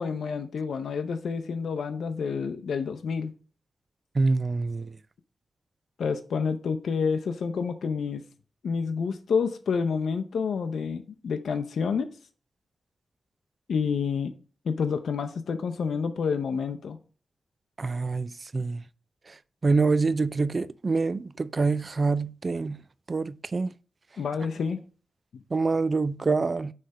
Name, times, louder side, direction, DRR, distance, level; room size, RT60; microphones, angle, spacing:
voice 1, 0.0-3.3 6.0-8.2 8.6-12.1 13.7-14.3 14.6-17.0 24.2-24.9 25.3-25.4, left 5 dB, 90° left, 0.5 m, -29 dB
voice 2, 4.2-4.9 17.8-18.8 19.6-22.8 23.1-23.7 25.5-26.7, right 3 dB, 40° right, 0.3 m, -26 dB
6.3 x 3.4 x 5.6 m
wide cardioid pair, 110°, 0 cm